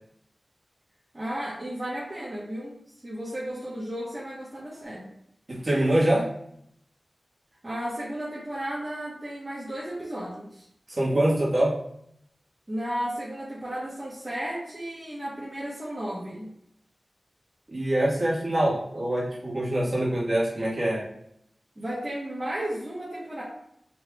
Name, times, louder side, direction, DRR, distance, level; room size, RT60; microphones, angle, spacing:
voice 1, 1.1-2.7 3.0-5.1 7.6-10.7 12.7-16.5 21.8-23.4, right 1 dB, 30° right, -8 dB, 1.1 m, -34 dB
voice 2, 5.5-6.3 10.9-11.7 17.7-21.1, right 1 dB, 45° right, -6 dB, 1.4 m, -24 dB
5.4 x 3.2 x 2.3 m, 0.73 s
wide cardioid pair, 75°, 0 cm